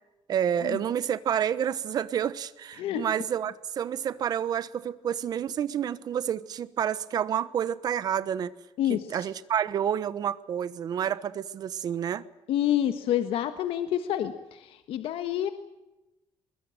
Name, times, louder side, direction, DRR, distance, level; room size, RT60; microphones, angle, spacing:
voice 1, 0.3-8.5 8.9-12.2, right 9 dB, 45° right, 16 dB, 1.2 m, -29 dB
voice 2, 8.8-9.3 12.5-15.5, left 11 dB, 90° left, 9 dB, 1.5 m, -28 dB
24.0 x 22.0 x 9.0 m, 0.98 s
cardioid pair, 175°, 9 cm